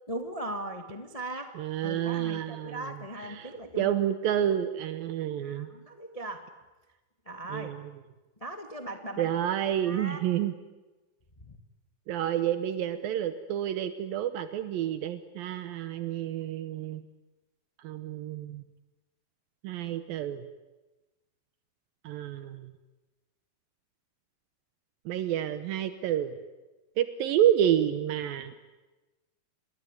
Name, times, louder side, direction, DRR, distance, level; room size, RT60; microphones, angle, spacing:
voice 1, 0.1-1.5 1.8-4.1 5.4-6.5 7.2-7.7 8.4-9.3 9.8-10.2 11.4-11.6, right 1 dB, 25° left, 6 dB, 0.8 m, -39 dB
voice 2, 1.6-2.9 3.2-3.5 3.8-5.7 7.5-7.8 9.2-10.5 12.1-17.0 17.8-18.6 19.6-20.5 22.0-22.7 25.1-26.4 27.0-28.5, right 10 dB, 80° right, 10 dB, 2.8 m, -29 dB
27.5 x 22.0 x 9.8 m, 1.1 s
omnidirectional pair, 4.1 m